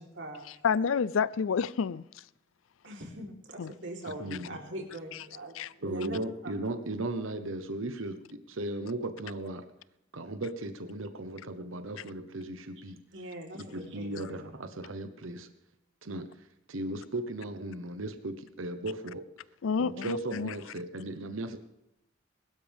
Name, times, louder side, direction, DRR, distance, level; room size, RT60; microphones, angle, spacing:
voice 1, 0.0-0.5 2.8-6.2 13.1-14.5, right 1 dB, 70° right, 3.9 m, -42 dB
voice 2, 0.6-2.0 3.6-3.7 5.5-5.7 19.6-20.5, left 6 dB, 85° left, 0.4 m, -29 dB
voice 3, 4.1-4.6 5.8-9.6 10.1-13.0 13.6-15.5 16.0-16.3 16.7-19.2 19.8-21.6, right 2 dB, 85° right, 1.1 m, -36 dB
21.5 x 12.5 x 3.6 m
head